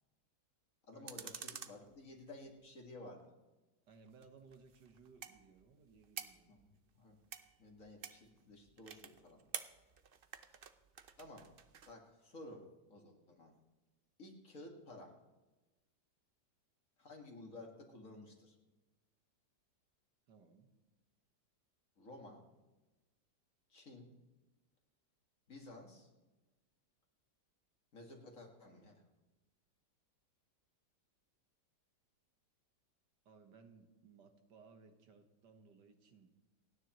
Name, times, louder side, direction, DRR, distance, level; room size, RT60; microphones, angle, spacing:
voice 1, 0.9-3.3 6.5-7.2 7.6-9.5 10.3-10.6 11.2-11.5 11.8-13.5 14.2-15.2 17.0-18.6 22.0-22.4 23.7-24.1 25.5-26.1 27.9-29.0, left 2 dB, 50° left, 1 dB, 2.3 m, -54 dB
sound 1, 1.1-2.6 4.1-11.9, right 7 dB, 60° right, 0.6 m, -51 dB
voice 2, 3.9-6.6 20.3-20.7 33.3-36.3, right 5 dB, 75° right, 5 dB, 1.9 m, -62 dB
29.0 x 9.8 x 3.1 m, 1.1 s
omnidirectional pair, 1.9 m